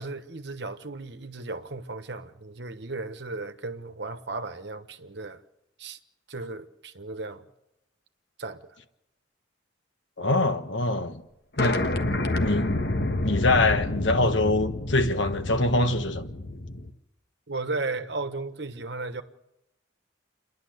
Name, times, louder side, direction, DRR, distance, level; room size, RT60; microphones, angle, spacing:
voice 1, 0.0-5.4 5.8-6.0 6.3-7.4 8.4-8.7 17.5-19.2, right 3 dB, 65° right, 1.3 m, -35 dB
voice 2, 10.2-11.2 11.6-11.9 12.4-12.8 13.2-16.3, left 2 dB, 85° left, 1.5 m, -24 dB
sound 1, 11.6-16.9, left 2 dB, 60° left, 1.3 m, -29 dB
29.0 x 11.0 x 8.0 m
head